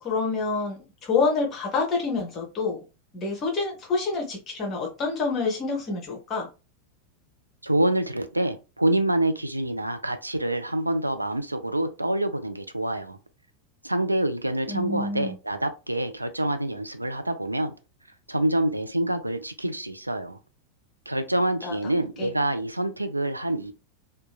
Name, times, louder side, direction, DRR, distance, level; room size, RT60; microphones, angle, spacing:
voice 1, 0.0-2.8 3.1-6.5 14.7-15.4 21.6-21.8 22.2-22.3, left 4 dB, 30° left, 0.8 m, -27 dB
voice 2, 7.6-13.2 13.8-17.7 18.3-20.4 21.1-23.7, right 1 dB, 85° right, 0.3 m, -26 dB
2.9 x 2.2 x 2.3 m
figure-of-eight pair, 90°, 0 cm